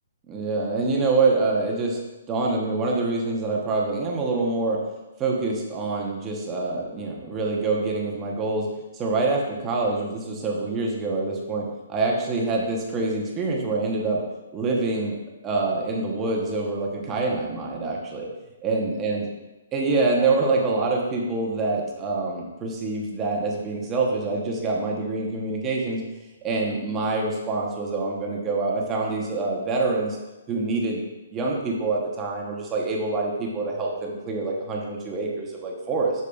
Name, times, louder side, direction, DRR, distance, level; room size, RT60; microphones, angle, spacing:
voice 1, 0.3-2.0 2.3-4.8 5.2-8.7 8.9-14.2 14.5-15.2 15.4-18.3 18.6-19.2 19.7-26.0 26.4-30.2 30.5-31.0 31.3-36.1, right 3 dB, 15° right, -2 dB, 0.9 m, -25 dB
8.0 x 6.6 x 2.4 m, 1.1 s
hypercardioid pair, 175°, 0 cm